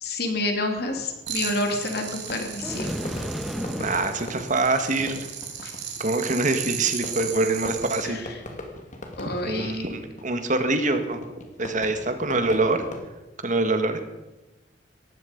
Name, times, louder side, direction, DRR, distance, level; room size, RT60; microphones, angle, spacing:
voice 1, 0.0-2.9 5.6-5.7 8.0-8.2 9.2-9.8, left 2 dB, 60° left, 4 dB, 3.0 m, -28 dB
Fireworks, 0.8-13.1, left 1 dB, 45° left, 2.8 m, -41 dB
sound 1, 1.3-8.1, right 8 dB, 70° right, 3.0 m, -36 dB
sound 2, 2.6-4.1, equal, ahead, 1.6 m, -32 dB
voice 2, 3.8-5.3 6.0-8.2 9.4-11.2 11.6-12.9 13.4-14.0, right 2 dB, 45° right, 8 dB, 1.7 m, -24 dB
18.5 x 14.5 x 5.3 m, 1.0 s
head